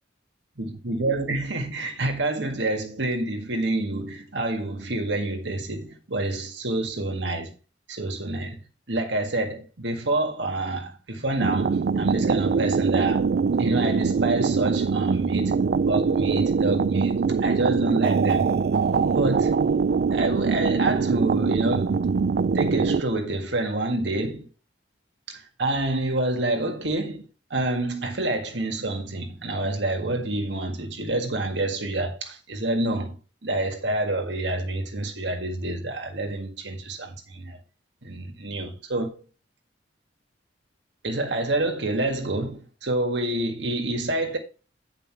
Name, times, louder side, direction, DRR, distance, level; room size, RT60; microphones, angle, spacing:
voice 1, 0.6-7.6 7.9-8.6 8.9-13.2 13.6-18.5 19.2-19.5 20.1-22.0 22.5-24.5 25.3-37.6 38.0-39.2 41.0-44.4, right 2 dB, 70° right, 1.9 m, -28 dB
sound 1, 11.4-23.0, right 5 dB, 55° right, 0.3 m, -23 dB
9.5 x 5.2 x 4.7 m
head